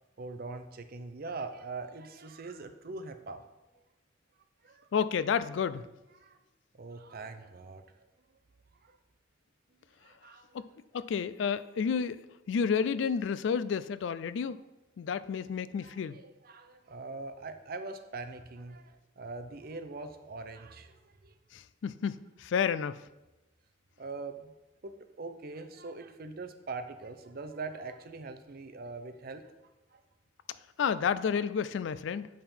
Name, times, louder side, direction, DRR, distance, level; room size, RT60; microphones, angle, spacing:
voice 1, 0.2-3.5 4.6-4.9 6.1-6.4 6.8-7.8 8.8-9.0 10.0-10.5 15.7-21.3 24.0-24.5 24.8-29.5 29.9-30.0, right 3 dB, 50° right, 8 dB, 0.6 m, -42 dB
voice 2, 4.9-5.8 10.5-10.7 10.9-12.2 12.5-14.6 15.0-16.2 21.5-23.0 30.8-32.3, left 6 dB, 65° left, 15 dB, 0.3 m, -30 dB
8.5 x 5.5 x 4.4 m, 1.0 s
head